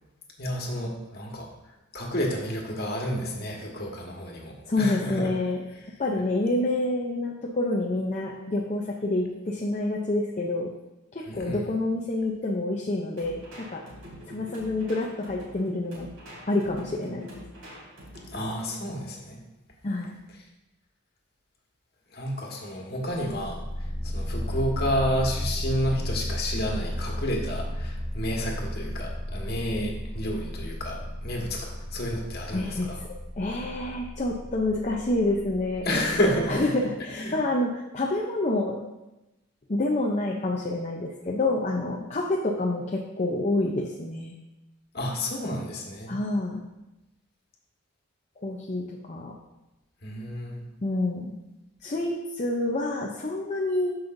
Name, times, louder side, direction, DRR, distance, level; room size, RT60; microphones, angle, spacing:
voice 1, 0.4-1.5 1.9-5.3 11.2-11.6 18.3-19.4 22.1-33.0 35.8-36.7 37.1-37.4 44.9-46.2 50.0-50.6, equal, 50° left, 0 dB, 1.6 m, -30 dB
voice 2, 4.7-5.6 6.0-10.7 11.1-13.8 14.3-16.1 16.5-17.3 19.8-20.1 32.5-32.9 33.4-36.1 36.5-38.8 39.7-44.3 46.1-46.6 48.4-49.3 50.8-51.3 51.8-54.0, left 2 dB, 35° left, -1 dB, 0.6 m, -28 dB
sound 1, 13.2-18.7, equal, 80° right, 3.2 m, -45 dB
sound 2, 23.1-36.6, equal, 10° right, 1.3 m, -34 dB
13.5 x 5.6 x 2.6 m, 0.99 s
head